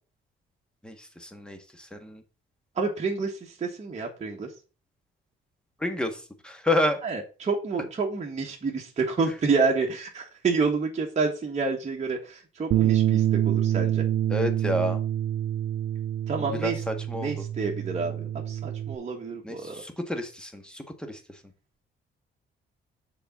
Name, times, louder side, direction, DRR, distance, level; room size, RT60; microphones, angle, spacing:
voice 1, 1.2-1.6 1.9-2.2 5.8-7.0 14.3-15.0 16.6-17.3 19.4-21.2, left 1 dB, 5° left, 6 dB, 1.5 m, -29 dB
voice 2, 2.8-4.5 7.0-14.0 16.3-16.8 17.1-19.8, right 4 dB, 35° right, -1 dB, 1.5 m, -29 dB
Bass guitar, 12.7-19.0, right 11 dB, 75° right, 0.6 m, -26 dB
6.7 x 4.1 x 6.0 m, 0.34 s
cardioid pair, 90°, 20 cm